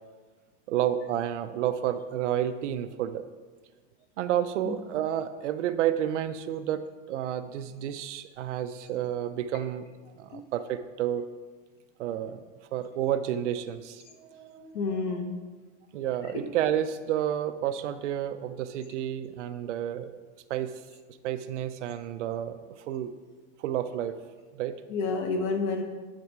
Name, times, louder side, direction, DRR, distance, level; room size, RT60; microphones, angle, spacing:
voice 1, 0.7-3.2 4.2-9.9 10.2-11.3 12.0-12.4 12.7-14.7 15.9-20.2 20.5-20.8 21.2-23.1 23.6-24.1 24.5-24.7, right 10 dB, 65° right, 11 dB, 0.6 m, -30 dB
voice 2, 14.6-15.3 16.3-16.5 24.9-25.8, left 3 dB, 45° left, 4 dB, 1.1 m, -29 dB
10.0 x 4.2 x 4.7 m, 1.4 s
supercardioid pair, 165°, 38 cm